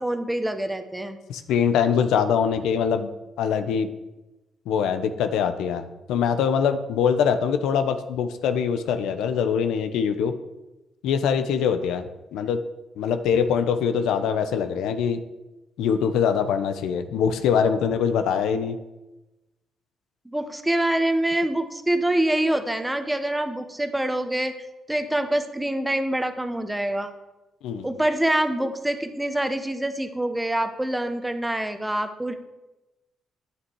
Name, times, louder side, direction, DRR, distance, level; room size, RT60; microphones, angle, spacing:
voice 1, 0.0-1.2 20.2-27.1 27.8-32.3, right 1 dB, 10° right, 8 dB, 1.1 m, -25 dB
voice 2, 1.3-3.1 3.4-3.9 4.7-10.3 11.0-12.6 13.0-15.2 15.8-18.8 27.6-27.9, left 7 dB, 85° left, 9 dB, 0.8 m, -23 dB
9.7 x 8.9 x 4.7 m, 1.0 s
cardioid pair, 90°, 0 cm